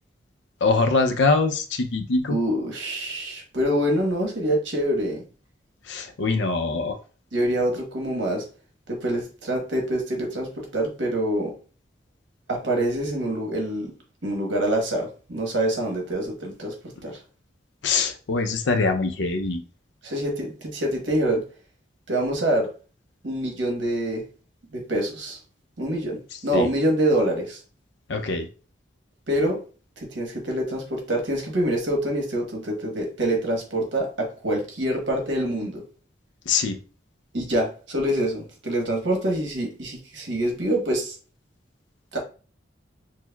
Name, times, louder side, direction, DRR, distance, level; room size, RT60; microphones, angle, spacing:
voice 1, 0.6-2.4 5.9-7.0 17.8-19.6 26.5-26.7 28.1-28.5 36.5-36.8, left 3 dB, 75° left, 0.5 m, -23 dB
voice 2, 2.3-5.2 7.3-8.4 8.9-11.5 12.5-13.9 14.2-16.7 17.0-17.2 20.0-21.4 22.1-22.7 23.2-24.2 24.7-25.4 25.8-27.6 29.3-29.6 30.0-35.8 37.3-41.2 42.1-42.2, right 1 dB, 80° right, 1.1 m, -25 dB
6.1 x 2.1 x 2.3 m
head